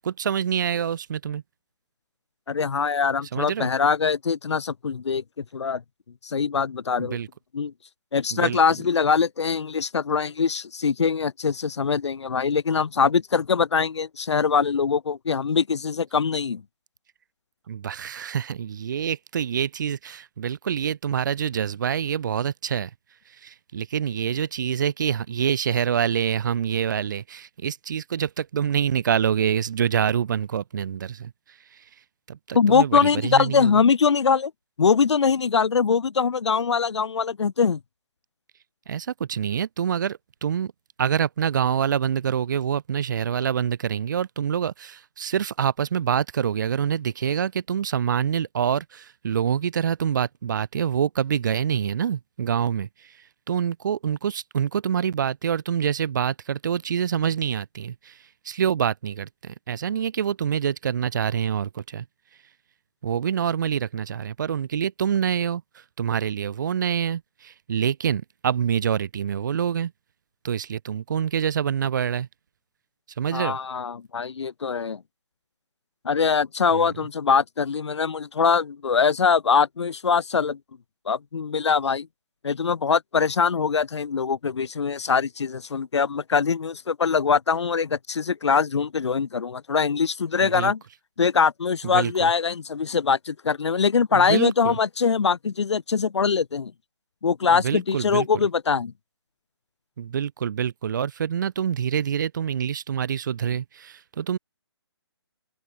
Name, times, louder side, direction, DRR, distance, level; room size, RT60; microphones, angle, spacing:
voice 1, 0.0-1.4 3.3-3.7 7.0-7.3 8.3-8.6 17.7-22.9 23.3-31.3 31.7-31.8 32.3-33.8 38.9-40.7 41.0-53.2 53.5-58.2 58.5-62.1 63.0-69.9 70.4-72.3 73.2-73.6 76.7-76.9 90.4-90.7 91.8-92.3 94.1-94.8 97.5-98.3 100.0-104.4, right 8 dB, 45° right, 2.0 m, -26 dB
voice 2, 2.5-5.8 6.2-7.2 7.5-7.7 8.1-16.6 32.5-34.5 34.8-37.8 73.3-75.0 76.0-80.6 81.1-82.1 82.4-90.8 91.2-96.7 97.2-98.9, left 6 dB, 85° left, 0.7 m, -23 dB
open air
hypercardioid pair, 160°, 14 cm